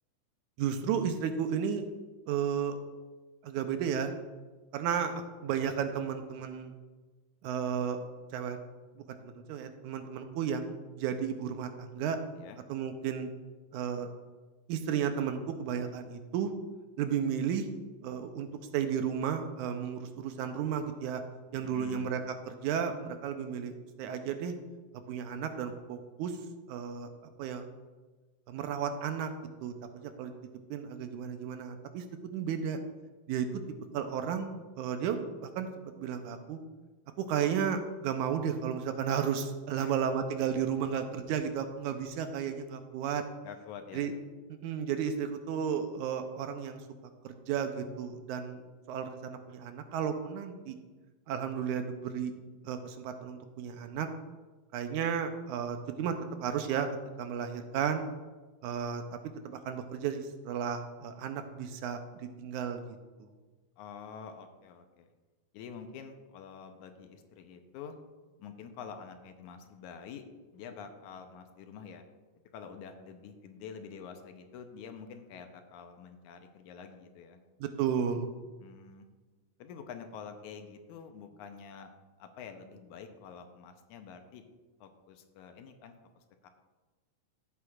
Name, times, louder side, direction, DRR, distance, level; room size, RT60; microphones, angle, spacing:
voice 1, 0.6-1.9 2.3-2.8 3.4-4.1 4.7-6.7 7.4-8.0 8.3-8.6 9.2-12.2 12.7-13.3 13.7-14.1 14.7-16.5 17.0-17.7 18.0-18.5 18.7-21.2 21.5-22.2 22.5-24.5 25.1-26.3 26.7-27.1 27.4-27.7 28.5-29.3 29.6-29.7 30.0-30.3 30.7-32.8 33.3-33.5 33.9-35.7 36.0-36.6 37.2-43.2 43.9-44.1 44.6-46.8 47.2-48.6 48.9-50.8 51.3-52.3 52.6-54.1 54.7-56.2 56.4-56.9 57.2-58.1 58.6-59.2 59.5-63.0 77.6-78.3, right 8 dB, 80° right, 7 dB, 2.1 m, -33 dB
voice 2, 21.6-22.1 39.8-40.1 40.8-41.1 43.4-44.1 63.8-65.1 65.5-68.0 68.4-70.3 70.5-72.1 72.5-77.4 78.6-79.1 79.6-81.9 82.2-84.5 84.8-85.9 86.4-86.5, left 6 dB, 80° left, 6 dB, 2.1 m, -47 dB
14.0 x 7.9 x 2.4 m, 1.3 s
omnidirectional pair, 3.6 m